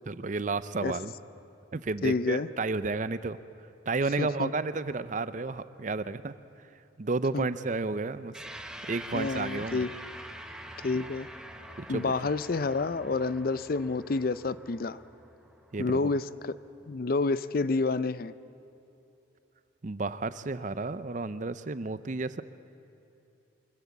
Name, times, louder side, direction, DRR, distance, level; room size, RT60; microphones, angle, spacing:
voice 1, 0.1-1.1 1.7-3.4 3.9-6.3 7.0-8.4 8.9-9.9 11.8-12.1 15.7-16.1 19.8-22.4, right 3 dB, 40° right, 14 dB, 0.5 m, -32 dB
voice 2, 2.0-2.5 4.2-4.5 7.3-7.5 9.1-9.9 10.8-11.3 11.9-15.0 15.8-16.5 16.9-18.3, left 3 dB, 45° left, 16 dB, 0.5 m, -29 dB
sound 1, 8.3-17.0, right 1 dB, 5° right, 0.9 m, -45 dB
24.5 x 14.0 x 8.4 m, 2.9 s
head